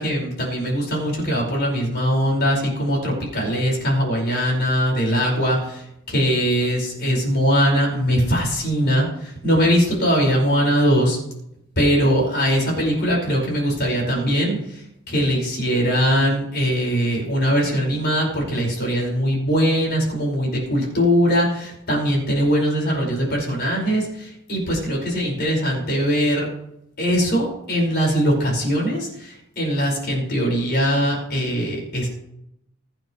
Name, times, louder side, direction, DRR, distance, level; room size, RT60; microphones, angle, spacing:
voice 1, 0.0-11.2 11.8-26.5 27.0-32.1, equal, 50° left, -2 dB, 5.3 m, -21 dB
22.0 x 9.0 x 3.2 m, 0.79 s
head